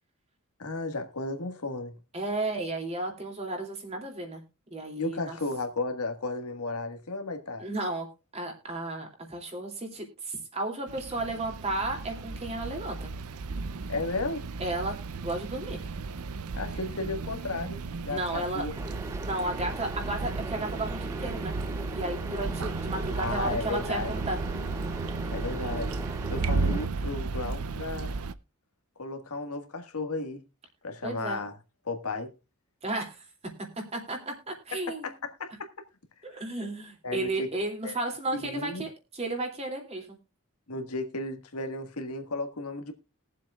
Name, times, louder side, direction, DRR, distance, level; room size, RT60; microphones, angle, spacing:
voice 1, 0.6-1.9 5.0-7.7 13.9-14.4 16.5-18.7 23.2-24.1 25.3-28.2 29.0-30.4 30.8-31.5 31.8-32.3 35.0-35.7 37.0-37.5 37.8-37.9 38.3-38.8 40.7-42.9, left 3 dB, 80° left, 1.6 m, -34 dB
voice 2, 2.1-4.4 4.7-5.4 7.6-8.1 8.3-13.1 14.6-15.8 18.1-18.7 19.2-21.5 21.9-24.4 31.0-31.4 32.8-33.2 33.9-35.1 36.2-40.2, right 2 dB, 30° right, 2.6 m, -33 dB
sound 1, 10.9-28.3, right 3 dB, 80° right, 0.6 m, -34 dB
sound 2, 18.7-26.9, right 2 dB, 15° right, 0.5 m, -40 dB
21.5 x 7.5 x 2.3 m
head